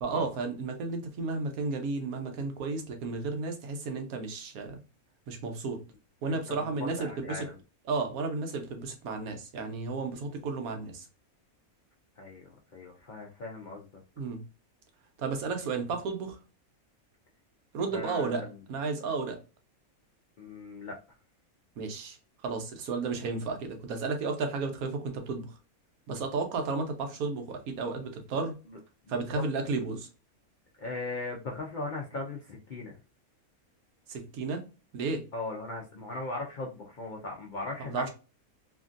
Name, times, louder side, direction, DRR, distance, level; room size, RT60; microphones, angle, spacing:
voice 1, 0.0-4.8 5.3-5.8 6.2-7.4 7.9-11.1 14.2-14.4 15.2-16.4 17.7-18.4 18.7-19.4 21.8-22.2 22.4-25.6 26.1-28.6 29.1-30.1 34.1-34.6 34.9-35.2 37.8-38.1, right 4 dB, 80° right, 5 dB, 1.2 m, -33 dB
voice 2, 6.2-7.5 12.2-14.0 17.9-18.6 20.4-21.0 28.7-28.8 29.0-29.4 30.8-33.0 35.3-38.1, left 2 dB, 65° left, -1 dB, 0.4 m, -38 dB
2.9 x 2.6 x 2.4 m, 0.32 s
omnidirectional pair, 1.5 m